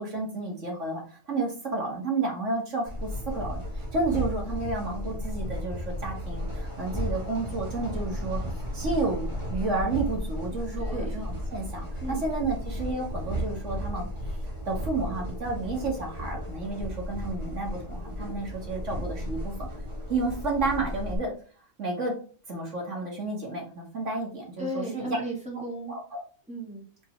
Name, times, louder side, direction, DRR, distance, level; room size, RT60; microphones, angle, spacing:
voice 1, 0.0-8.4 8.7-14.1 14.7-19.7 20.1-21.3 21.8-22.1 22.5-25.2 25.9-26.2, right 3 dB, 90° right, 0 dB, 2.5 m, -31 dB
sound 1, 2.9-21.1, equal, 25° right, 2.3 m, -34 dB
voice 2, 10.8-11.1 12.0-12.2 24.6-25.9 26.5-26.8, right 1 dB, 5° right, -3 dB, 2.9 m, -35 dB
5.7 x 5.1 x 5.2 m, 0.41 s
omnidirectional pair, 1.2 m